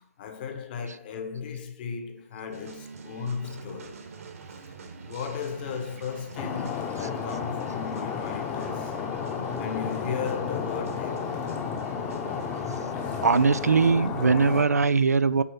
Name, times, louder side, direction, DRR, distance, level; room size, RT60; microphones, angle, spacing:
voice 1, 0.0-4.0 5.0-9.0 9.6-11.4 13.6-13.7 14.0-14.5, left 6 dB, 35° left, 1.1 m, -36 dB
sound 1, 2.5-13.9, right 4 dB, 65° right, 1.5 m, -44 dB
Stream, 6.4-14.6, left 6 dB, 20° left, 0.9 m, -32 dB
voice 2, 13.2-15.4, right 4 dB, 85° right, 0.5 m, -21 dB
6.8 x 4.3 x 5.6 m
hypercardioid pair, 145°, 8 cm